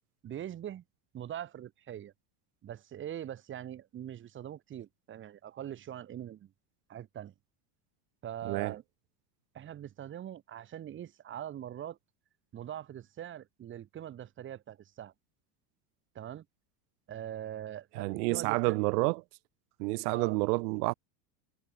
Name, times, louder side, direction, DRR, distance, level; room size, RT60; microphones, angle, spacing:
voice 1, 0.2-0.8 1.1-2.1 2.6-6.5 6.9-7.3 8.2-8.8 9.5-12.0 12.5-15.1 16.1-16.4 17.1-18.8 20.1-20.4, right 11 dB, 25° right, 4.0 m, -42 dB
voice 2, 18.0-19.2 19.8-20.9, right 25 dB, 85° right, 0.7 m, -29 dB
cardioid pair, 170°, 45 cm